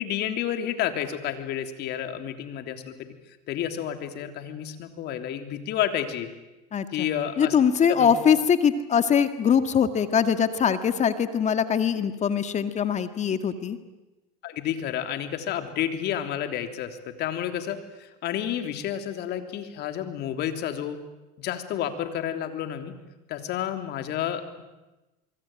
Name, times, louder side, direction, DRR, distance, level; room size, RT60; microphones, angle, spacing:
voice 1, 0.0-3.1 3.5-6.3 6.9-7.6 7.9-8.1 14.4-21.0 21.4-23.0 23.3-24.6, left 10 dB, 55° left, 8 dB, 3.3 m, -30 dB
voice 2, 6.7-7.1 7.4-13.8, left 7 dB, 35° left, 10 dB, 2.0 m, -22 dB
25.5 x 23.5 x 9.1 m, 1.1 s
supercardioid pair, 95°, 20 cm